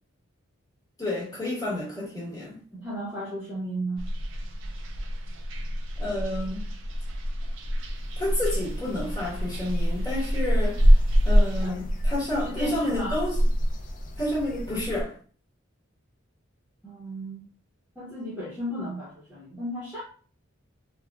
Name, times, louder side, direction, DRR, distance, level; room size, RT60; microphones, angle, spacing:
voice 1, 1.0-2.6 6.0-6.6 8.2-10.9 11.2-13.4 14.2-15.2, left 1 dB, 15° left, 1.2 m, -30 dB
voice 2, 2.7-4.1 11.6-11.8 12.4-13.2 16.8-17.5 18.0-20.0, equal, 5° right, 0.8 m, -34 dB
sound 1, 4.0-11.7, equal, 65° right, 0.4 m, -34 dB
sound 2, 7.7-15.0, equal, 40° left, 0.3 m, -24 dB
3.4 x 2.2 x 2.3 m
head